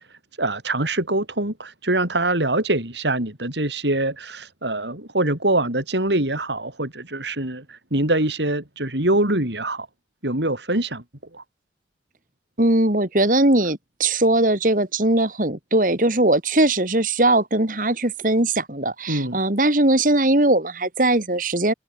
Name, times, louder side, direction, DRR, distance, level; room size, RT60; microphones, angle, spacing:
voice 1, 0.4-9.9 10.2-11.0 11.3-11.4 19.1-19.4, right 2 dB, 85° right, 5.7 m, -24 dB
voice 2, 12.6-21.7, right 2 dB, 50° right, 2.6 m, -20 dB
head